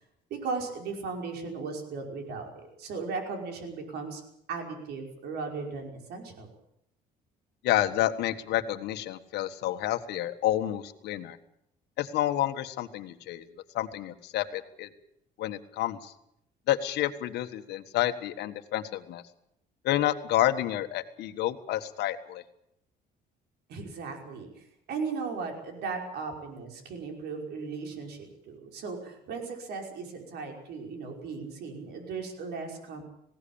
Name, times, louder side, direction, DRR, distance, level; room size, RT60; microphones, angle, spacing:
voice 1, 0.3-4.2 4.5-6.5 23.7-33.0, right 4 dB, 75° right, 3 dB, 5.4 m, -37 dB
voice 2, 7.6-11.4 12.0-13.4 13.7-14.9 15.4-16.1 16.7-19.2 19.8-22.4, left 13 dB, 80° left, 8 dB, 1.6 m, -29 dB
19.5 x 17.0 x 8.8 m, 0.75 s
cardioid pair, 110°, 17 cm